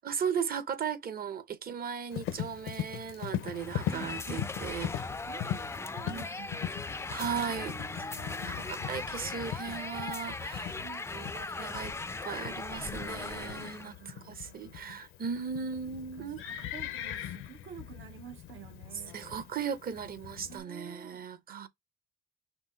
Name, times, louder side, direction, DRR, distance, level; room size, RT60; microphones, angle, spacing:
voice 1, 0.0-4.9 6.0-6.4 7.1-7.7 8.5-10.8 11.1-11.9 12.2-16.4 19.1-21.7, right 7 dB, 50° right, 0.9 m, -37 dB
Livestock farm animals working animals, 2.1-20.6, left 11 dB, 85° left, 0.7 m, -41 dB
sound 1, 3.5-13.9, left 3 dB, 15° left, 0.3 m, -39 dB
voice 2, 3.9-4.3 5.3-6.7 7.3-9.0 10.7-11.2 13.7-15.3 16.2-19.2 20.4-21.7, right 8 dB, 80° right, 1.2 m, -50 dB
6.1 x 2.2 x 3.8 m
cardioid pair, 90°, 20 cm